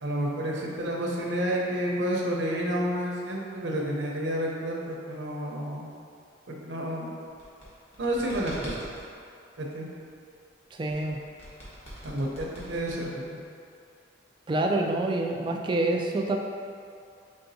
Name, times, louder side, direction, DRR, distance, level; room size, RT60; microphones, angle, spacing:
voice 1, 0.0-5.9 6.5-7.1 8.0-8.8 9.6-9.9 12.0-13.4, equal, 70° right, -2 dB, 0.7 m, -30 dB
sound 1, 7.3-9.1 10.9-13.4, equal, 35° left, 1.2 m, -44 dB
voice 2, 10.7-11.2 14.5-16.4, right 2 dB, 25° right, 2 dB, 0.3 m, -27 dB
5.6 x 3.5 x 2.7 m, 2.4 s
head